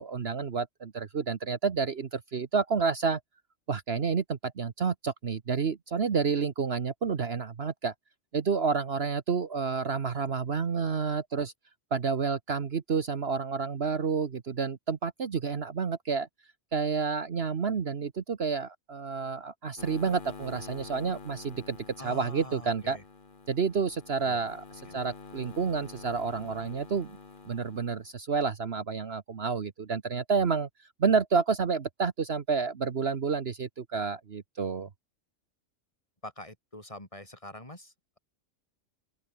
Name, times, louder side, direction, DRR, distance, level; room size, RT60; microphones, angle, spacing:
voice 1, 0.0-3.2 3.7-7.9 8.3-11.5 11.9-16.3 16.7-23.0 23.5-24.6 24.9-27.2 27.5-30.7 31.0-34.9, right 5 dB, 55° right, 1.3 m, -29 dB
sound 1, 19.8-28.0, left 4 dB, 40° left, 1.7 m, -47 dB
voice 2, 22.0-23.0 24.2-24.4 36.2-38.2, left 1 dB, 25° left, 4.1 m, -44 dB
open air
omnidirectional pair, 1.3 m